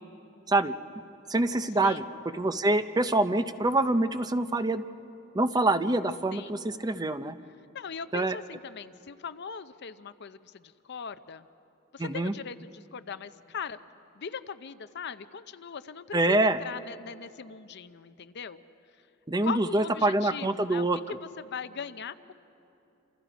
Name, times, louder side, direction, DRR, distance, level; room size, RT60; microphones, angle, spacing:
voice 1, 1.3-2.0 2.3-4.8 5.3-7.4 8.1-8.3 12.0-12.3 16.1-16.6 19.3-21.2, right 2 dB, 20° right, 10 dB, 0.6 m, -25 dB
voice 2, 1.8-2.1 6.3-6.6 7.7-11.5 11.9-13.8 14.2-18.6 19.4-20.9 21.4-22.3, left 6 dB, 55° left, 12 dB, 0.6 m, -40 dB
28.5 x 27.5 x 5.1 m, 2.8 s
head